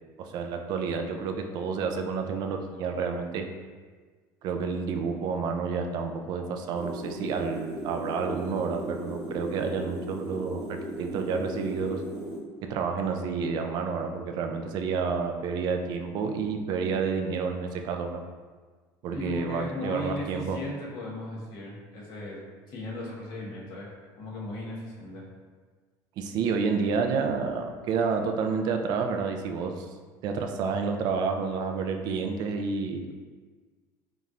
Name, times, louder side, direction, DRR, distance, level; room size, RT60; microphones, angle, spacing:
voice 1, 0.2-3.5 4.4-12.0 12.7-18.2 19.0-20.6 26.2-29.9 30.2-33.1, right 5 dB, 55° right, 5 dB, 0.4 m, -29 dB
sound 1, 6.8-12.4, right 1 dB, 5° right, 0.9 m, -37 dB
voice 2, 19.1-22.4 22.7-23.9 24.2-25.2, left 1 dB, 60° left, -4 dB, 1.2 m, -37 dB
5.3 x 2.9 x 2.5 m, 1.4 s
cardioid pair, 140°, 8 cm